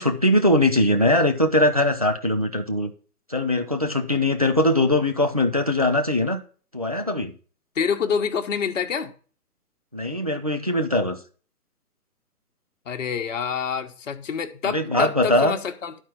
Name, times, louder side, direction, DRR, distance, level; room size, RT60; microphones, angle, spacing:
voice 1, 0.0-2.9 3.3-6.4 6.7-7.3 9.9-11.2 14.6-15.6, left 1 dB, 25° right, 0.4 m, -21 dB
voice 2, 7.7-9.1 12.9-16.0, left 6 dB, 50° left, 1.1 m, -27 dB
11.0 x 4.5 x 6.1 m
figure-of-eight pair, 140°, 48 cm